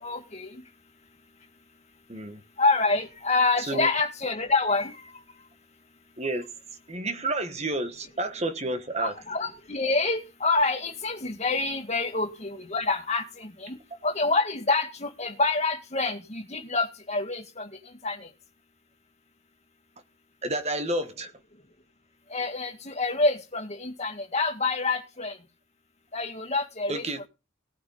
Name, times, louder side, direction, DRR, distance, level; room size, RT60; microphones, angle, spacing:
voice 1, 0.0-0.6 2.6-5.0 9.0-17.7 18.0-18.3 22.3-25.4 26.1-27.0, left 3 dB, 35° left, 2.0 m, -27 dB
voice 2, 2.1-2.4 3.6-3.9 6.2-6.5 6.9-9.2 20.4-21.3 26.9-27.3, right 2 dB, 30° right, 1.3 m, -30 dB
18.0 x 9.6 x 4.0 m
head